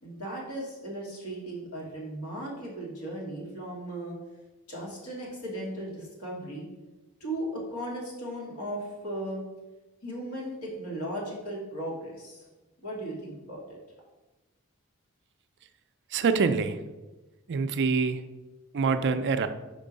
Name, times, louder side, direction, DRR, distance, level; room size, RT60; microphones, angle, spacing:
voice 1, 0.0-4.2 4.7-6.7 7.2-9.4 10.0-12.5 12.8-13.8, right 1 dB, 75° left, -3 dB, 2.1 m, -36 dB
voice 2, 16.1-16.8 17.5-18.2 18.7-19.5, right 5 dB, 55° right, 10 dB, 0.4 m, -25 dB
5.3 x 4.5 x 5.2 m, 1.1 s
head